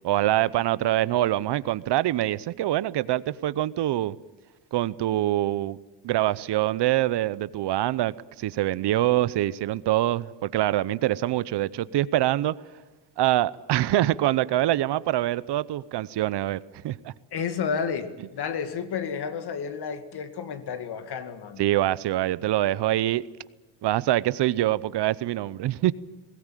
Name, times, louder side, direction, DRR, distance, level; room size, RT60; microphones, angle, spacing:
voice 1, 0.0-4.2 4.7-5.8 6.0-12.5 13.2-17.1 21.6-23.3 23.8-25.9, right 14 dB, 60° right, 0.8 m, -25 dB
voice 2, 17.3-21.7, left 6 dB, 55° left, 2.3 m, -31 dB
21.5 x 18.0 x 9.1 m
cardioid pair, 110°, 47 cm